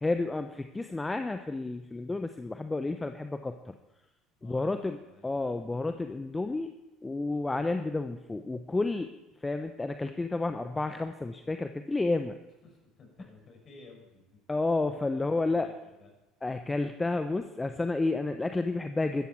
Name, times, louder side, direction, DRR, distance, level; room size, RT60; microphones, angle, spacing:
voice 1, 0.0-3.8 4.4-5.0 5.2-6.7 7.0-9.1 9.4-12.4 14.5-15.7 16.4-19.3, left 2 dB, 15° left, 8 dB, 0.9 m, -31 dB
voice 2, 4.4-5.3 12.6-14.2 14.9-16.1, left 3 dB, 40° left, 1 dB, 6.3 m, -54 dB
15.0 x 14.0 x 4.7 m, 1.0 s
figure-of-eight pair, 65°, 0 cm